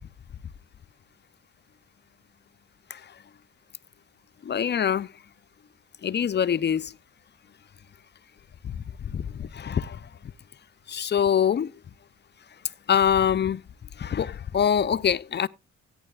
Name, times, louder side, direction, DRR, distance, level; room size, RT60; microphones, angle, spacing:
voice 1, 4.4-5.1 6.0-6.9 8.6-10.0 10.9-11.7 12.9-13.6 14.0-15.5, left 8 dB, 35° left, 0.6 m, -24 dB
17.0 x 9.6 x 2.3 m
cardioid pair, 90°, 30 cm